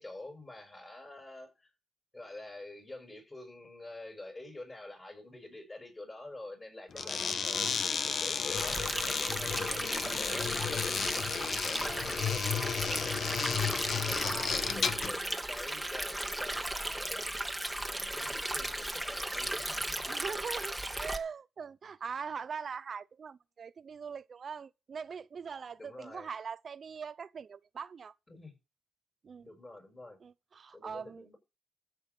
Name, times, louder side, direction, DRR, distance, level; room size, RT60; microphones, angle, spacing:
voice 1, 0.0-1.7 2.1-17.3 17.8-20.2 25.8-26.3 28.3-28.6 29.4-30.2 30.7-31.4, left 2 dB, 25° left, 6.8 m, -48 dB
sound 1, 6.9-15.2, left 6 dB, 60° left, 1.1 m, -33 dB
voice 2, 6.9-7.3 12.1-12.2 14.2-14.5 20.1-28.1 29.2-29.5 30.2-31.3, right 6 dB, 55° right, 0.6 m, -42 dB
Stream, 8.6-21.2, right 1 dB, 5° right, 1.7 m, -36 dB
14.0 x 7.8 x 5.6 m
cardioid pair, 95°, 0 cm